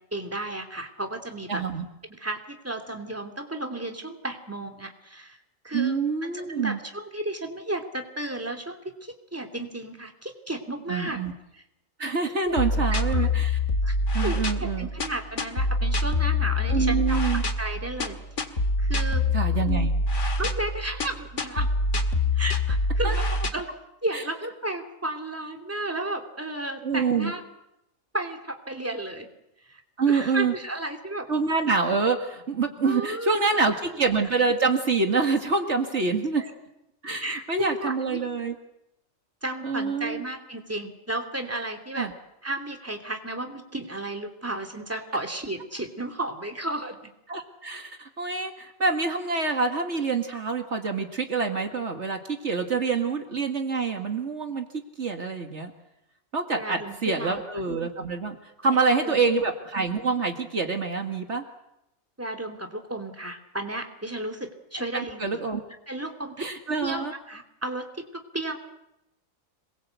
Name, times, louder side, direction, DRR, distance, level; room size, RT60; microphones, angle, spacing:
voice 1, 0.1-1.6 2.1-5.4 5.6-11.2 11.5-11.6 12.5-13.3 13.8-13.9 14.2-18.2 18.8-19.2 20.4-21.7 22.3-23.3 23.5-23.7 24.0-27.4 28.1-29.3 29.7-29.8 30.1-31.3 32.8-33.6 36.3-36.5 37.2-38.2 39.4-42.1 42.4-47.1 56.5-57.4 58.7-59.4 62.2-65.4 65.9-66.5 66.8-68.6, right 2 dB, 10° right, 4 dB, 2.9 m, -33 dB
voice 2, 1.5-1.9 5.7-6.8 10.9-11.3 12.0-13.6 14.1-14.9 16.7-17.4 19.3-19.9 23.0-23.2 24.1-24.2 26.8-27.3 30.0-30.5 31.3-36.4 37.0-38.5 39.6-40.2 41.9-42.1 47.3-55.7 56.3-61.4 64.9-65.6 66.4-67.1, right 4 dB, 55° right, 4 dB, 2.2 m, -26 dB
sound 1, 12.6-23.5, left 2 dB, 60° left, 2.2 m, -25 dB
27.0 x 21.5 x 8.2 m, 0.88 s
omnidirectional pair, 1.4 m